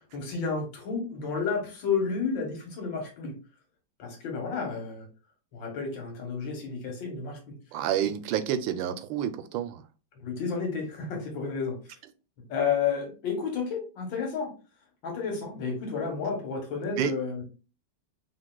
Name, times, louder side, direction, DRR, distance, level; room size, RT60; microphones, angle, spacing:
voice 1, 0.1-3.4 4.0-5.1 5.5-7.6 10.2-11.8 12.5-14.5 15.0-17.4, left 5 dB, 80° left, 2.0 m, -31 dB
voice 2, 7.7-9.8 17.0-17.1, right 10 dB, 90° right, 1.3 m, -29 dB
5.3 x 2.9 x 2.2 m
omnidirectional pair, 2.1 m